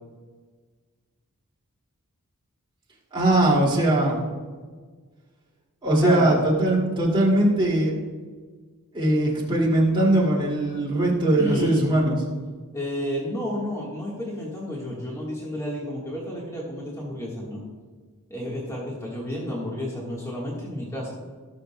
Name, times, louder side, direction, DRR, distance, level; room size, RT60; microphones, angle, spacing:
voice 1, 3.1-4.2 5.8-7.9 8.9-12.2, right 1 dB, 25° right, -4 dB, 2.4 m, -20 dB
voice 2, 6.0-6.4 11.4-11.9 12.7-17.6 18.3-21.1, equal, 15° left, -5 dB, 1.5 m, -31 dB
18.0 x 6.5 x 2.3 m, 1.5 s
head